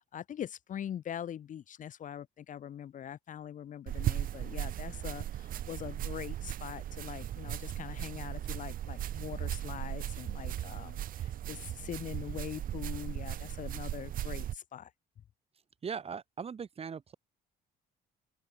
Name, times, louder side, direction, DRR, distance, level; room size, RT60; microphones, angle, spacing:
voice 1, 0.0-14.9, left 9 dB, 50° left, 1.6 m, -43 dB
sound 1, 3.9-14.6, right 12 dB, 55° right, 0.9 m, -37 dB
voice 2, 15.8-17.1, right 6 dB, 35° right, 3.6 m, -39 dB
open air
cardioid pair, 110°, 17 cm